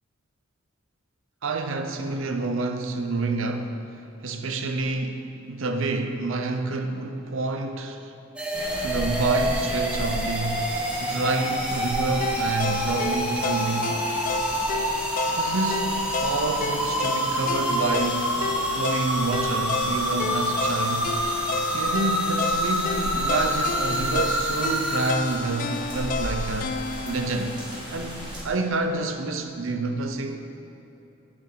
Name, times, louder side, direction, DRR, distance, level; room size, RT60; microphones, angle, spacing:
voice 1, 1.4-8.1 8.8-10.7 11.0-13.9 15.3-21.1 21.7-26.7 27.0-27.5 27.9-30.4, right 3 dB, 60° right, 6 dB, 0.7 m, -28 dB
sound 1, 8.4-25.1, right 1 dB, 5° right, 0.7 m, -27 dB
sound 2, 8.5-28.4, equal, 20° right, 1.8 m, -36 dB
sound 3, 12.2-28.3, left 4 dB, 40° left, 0.3 m, -31 dB
8.9 x 7.1 x 4.8 m, 2.9 s
head